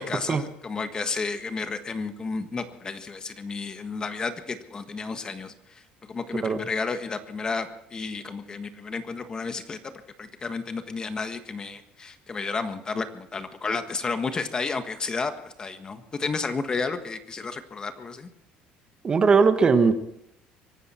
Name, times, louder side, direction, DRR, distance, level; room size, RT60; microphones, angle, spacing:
voice 1, 0.0-18.3, left 4 dB, 25° left, 9 dB, 1.5 m, -32 dB
voice 2, 19.0-19.9, right 5 dB, 30° right, 9 dB, 1.3 m, -19 dB
24.0 x 12.0 x 4.4 m, 0.80 s
cardioid pair, 125°, 3 cm